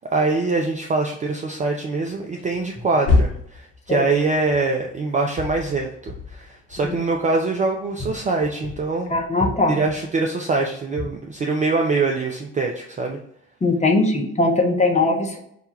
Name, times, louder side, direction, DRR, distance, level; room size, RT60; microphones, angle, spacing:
voice 1, 0.1-9.1 9.7-13.2, right 3 dB, 20° right, 2 dB, 0.4 m, -23 dB
sound 1, 2.4-5.0 5.3-7.4 8.0-10.3 10.9-11.2, left 3 dB, 40° left, 1.2 m, -28 dB
voice 2, 9.1-9.8 13.6-15.4, left 2 dB, 15° left, 1 dB, 0.8 m, -20 dB
5.7 x 2.2 x 2.9 m, 0.72 s
figure-of-eight pair, 50°, 39 cm